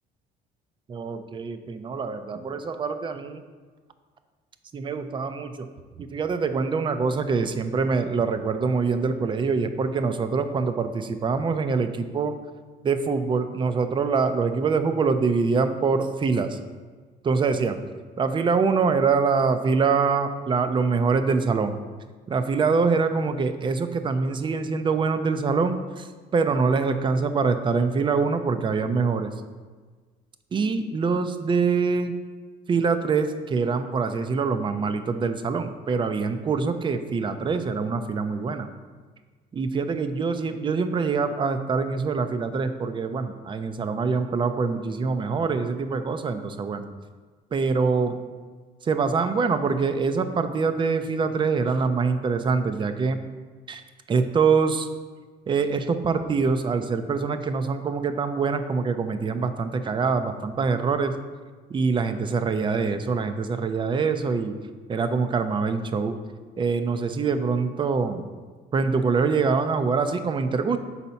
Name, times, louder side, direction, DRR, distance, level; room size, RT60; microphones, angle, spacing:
voice 1, 0.9-3.4 4.7-5.7 6.0-12.3 12.8-16.6 17.2-17.8 18.2-21.8 22.3-26.1 26.3-29.3 30.5-32.1 32.7-38.7 39.5-46.9 47.5-48.2 48.8-53.2 53.7-53.8 54.1-54.9 55.5-61.1 61.7-64.6 64.9-66.2 66.6-68.2 68.7-70.8, right 4 dB, 30° right, 9 dB, 0.4 m, -24 dB
4.2 x 4.0 x 5.6 m, 1.4 s
cardioid pair, 110°, 17 cm